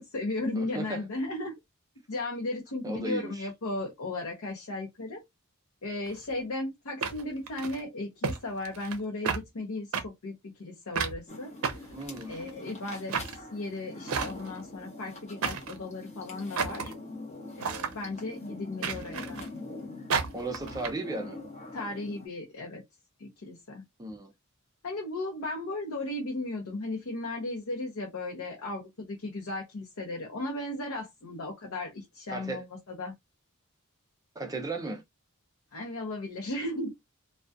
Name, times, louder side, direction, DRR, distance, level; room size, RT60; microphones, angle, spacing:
voice 1, 0.0-1.6 2.1-5.2 5.8-11.8 12.3-16.9 17.6-19.4 21.7-22.8 23.2-23.8 24.8-33.1 35.7-36.9, left 2 dB, 70° left, 0.6 m, -36 dB
voice 2, 0.5-1.1 2.8-3.5 11.9-12.4 20.3-21.4 24.0-24.3 32.3-32.6 34.4-35.0, right 2 dB, 15° right, 0.4 m, -35 dB
sound 1, 6.1-6.2 7.0-7.8 8.2-8.4 8.7-9.0 9.3-9.4 9.9-10.0 11.0-11.2 11.6-12.5 13.1-13.4 14.1-14.6 15.4-15.8 16.6-16.9 17.6-17.9 18.8-19.5 20.1-20.9, right 5 dB, 70° right, 0.5 m, -31 dB
sound 2, 11.3-22.3, left 2 dB, 30° left, 0.8 m, -44 dB
2.3 x 2.2 x 2.5 m
head